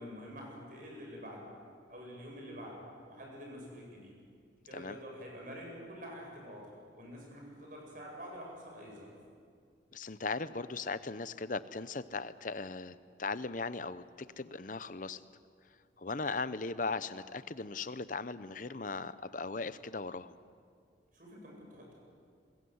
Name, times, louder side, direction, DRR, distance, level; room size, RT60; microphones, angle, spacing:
voice 1, 0.0-1.5 1.9-4.1 4.6-9.1 21.1-21.9, equal, 45° right, -1 dB, 7.8 m, -47 dB
voice 2, 9.9-14.0 14.4-15.2 16.0-20.3, left 3 dB, 45° left, 14 dB, 0.8 m, -38 dB
27.5 x 21.5 x 8.0 m, 2.2 s
head